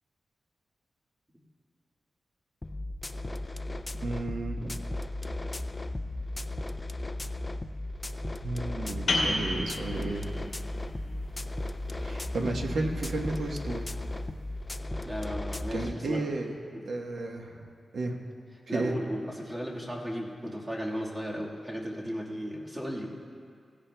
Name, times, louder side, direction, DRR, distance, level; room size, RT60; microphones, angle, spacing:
sound 1, 2.6-15.9, left 2 dB, 20° left, 0.3 m, -36 dB
voice 1, 4.0-4.7 8.4-10.3 12.0-13.9 15.7-16.6 16.8-17.5 17.9-18.2 18.7-19.0, right 2 dB, 75° right, 1 dB, 1.2 m, -33 dB
sound 2, 9.1-14.4, left 2 dB, 65° left, 2.2 m, -35 dB
voice 2, 15.0-16.4 16.7-16.8 18.7-23.1, equal, 15° right, -4 dB, 1.6 m, -35 dB
17.5 x 16.5 x 2.2 m, 2.2 s
wide cardioid pair, 155°, 0 cm